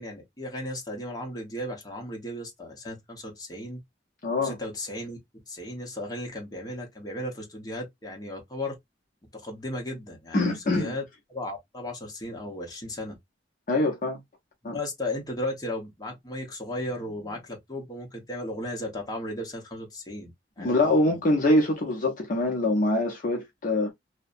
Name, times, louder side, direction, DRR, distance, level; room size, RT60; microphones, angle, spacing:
voice 1, 0.0-3.8 4.4-8.7 9.3-11.0 11.3-13.2 14.6-21.2, left 1 dB, 20° left, 0.9 m, -35 dB
voice 2, 4.2-4.5 10.3-10.9 13.7-14.2 14.6-14.8 20.6-23.9, left 1 dB, 45° left, 0.6 m, -24 dB
2.6 x 2.1 x 2.5 m
head